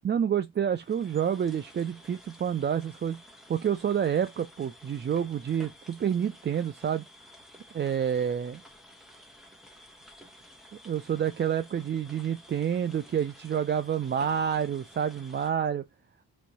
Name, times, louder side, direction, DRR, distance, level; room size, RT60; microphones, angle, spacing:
voice 1, 0.0-3.2 3.5-7.0 7.7-8.6 10.8-15.8, right 8 dB, 30° right, 0.4 m, -28 dB
sound 1, 0.7-15.5, equal, ahead, 1.2 m, -53 dB
3.1 x 2.9 x 4.1 m
supercardioid pair, 50°, 39 cm